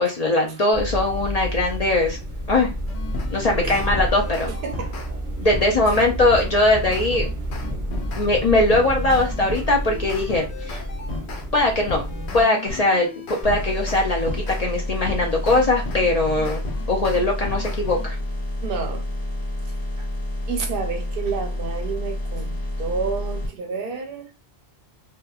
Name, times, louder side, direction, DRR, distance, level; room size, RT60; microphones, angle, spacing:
voice 1, 0.0-2.2 2.5-2.7 3.3-4.5 5.4-7.3 8.2-10.8 11.5-12.0 12.3-13.1 13.4-16.6 16.9-18.2, left 2 dB, 50° left, 0.5 m, -20 dB
sound 1, 0.7-12.4, equal, 15° right, 0.7 m, -30 dB
sound 2, 2.9-5.1 5.5-11.5 11.9-14.6 15.1-18.0, left 3 dB, 85° left, 0.9 m, -35 dB
voice 2, 4.3-5.3 5.8-5.9 18.6-19.1 19.6-20.1 20.5-24.3, right 5 dB, 65° right, 0.7 m, -31 dB
sound 3, 13.4-23.5, left 1 dB, 20° left, 1.2 m, -29 dB
2.9 x 2.2 x 2.3 m
omnidirectional pair, 1.1 m